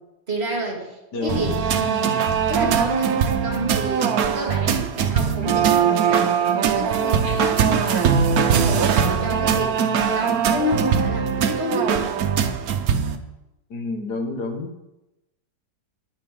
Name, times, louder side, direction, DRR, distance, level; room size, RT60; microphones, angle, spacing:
voice 1, 0.3-12.1, right 1 dB, 35° right, 0 dB, 2.2 m, -30 dB
voice 2, 1.1-1.6 13.7-14.7, left 3 dB, 70° left, 3 dB, 2.0 m, -28 dB
sound 1, 1.3-13.2, right 7 dB, 65° right, 1.1 m, -21 dB
19.5 x 6.6 x 3.7 m, 0.95 s
omnidirectional pair, 1.9 m